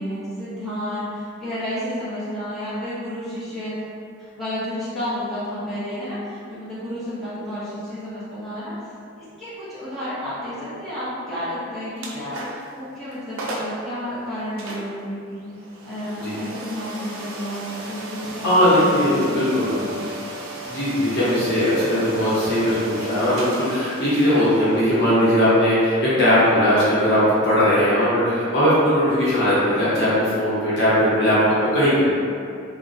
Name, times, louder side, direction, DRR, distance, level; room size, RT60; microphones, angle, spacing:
voice 1, 0.0-3.8 4.2-8.7 9.2-15.5 15.8-19.4 19.7-20.0, equal, ahead, -15 dB, 0.7 m, -31 dB
sound 1, 12.0-12.7 13.1-13.2 13.4-13.8 14.6-27.3, right 1 dB, 80° right, 0.4 m, -35 dB
voice 2, 18.4-20.0 20.6-32.1, equal, 55° left, -11 dB, 0.9 m, -19 dB
2.5 x 2.1 x 2.5 m, 2.4 s
head